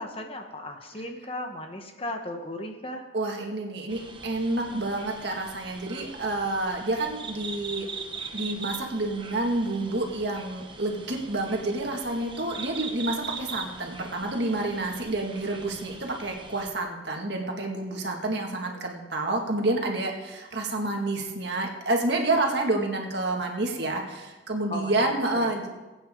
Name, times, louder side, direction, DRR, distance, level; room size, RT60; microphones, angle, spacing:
voice 1, 0.0-3.0 24.7-25.5, left 1 dB, 30° left, 4 dB, 1.2 m, -36 dB
voice 2, 3.1-7.9 8.3-25.7, right 2 dB, 55° right, 1 dB, 2.0 m, -29 dB
sound 1, 3.9-16.7, right 4 dB, 25° right, 1.0 m, -41 dB
22.5 x 8.9 x 3.8 m, 1.1 s
head